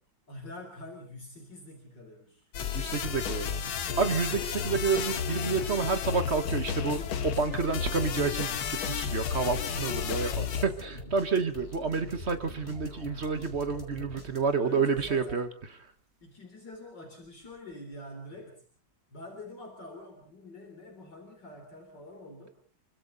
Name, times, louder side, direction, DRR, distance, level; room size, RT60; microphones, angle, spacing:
voice 1, 0.3-2.5 4.1-4.5 9.9-10.6 14.6-15.5 16.2-18.6 19.1-22.5, left 1 dB, 60° left, 2 dB, 4.3 m, -46 dB
sound 1, 2.5-10.7, left 8 dB, 90° left, 2.1 m, -32 dB
sound 2, 2.5-14.8, left 1 dB, 30° left, 4.3 m, -44 dB
voice 2, 2.7-3.5 4.0-15.5, right 5 dB, 35° right, 9 dB, 1.5 m, -29 dB
26.5 x 24.0 x 4.1 m, 0.42 s
omnidirectional pair, 2.2 m